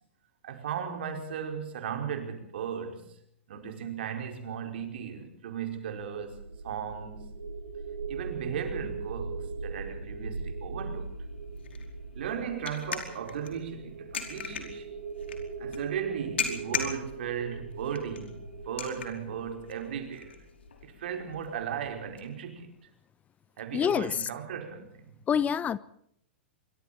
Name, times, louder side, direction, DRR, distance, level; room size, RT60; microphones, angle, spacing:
voice 1, 0.4-3.1 3.5-7.3 8.1-11.1 12.2-14.9 15.6-20.4 20.8-22.9 23.6-25.1, right 8 dB, 65° right, 5.2 m, -36 dB
sound 1, 5.6-20.7, right 4 dB, 85° right, 3.7 m, -40 dB
Glass Bottle Manipulation, 10.9-22.2, left 6 dB, 75° left, 4.8 m, -40 dB
voice 2, 23.7-24.3 25.3-25.8, left 8 dB, 25° left, 0.9 m, -26 dB
25.5 x 24.0 x 4.4 m
figure-of-eight pair, 100°, 6 cm